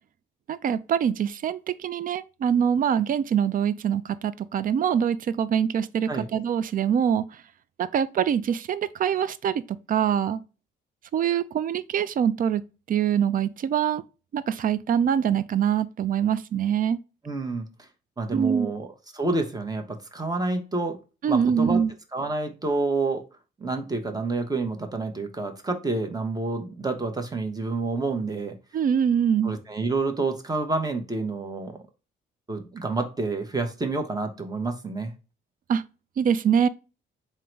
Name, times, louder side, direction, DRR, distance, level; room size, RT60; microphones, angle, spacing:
voice 1, 0.5-7.2 7.8-9.6 9.9-10.4 11.1-12.6 12.9-14.0 14.3-17.0 18.3-18.7 21.2-21.9 28.7-29.5 35.7-35.8 36.2-36.7, right 8 dB, 45° right, 0.4 m, -24 dB
voice 2, 17.2-17.7 18.2-18.9 19.1-21.0 21.3-21.8 22.1-23.2 23.6-28.5 29.4-31.8 32.5-35.1, right 3 dB, 20° right, 0.9 m, -28 dB
3.8 x 2.1 x 4.5 m
cardioid pair, 90°, 20 cm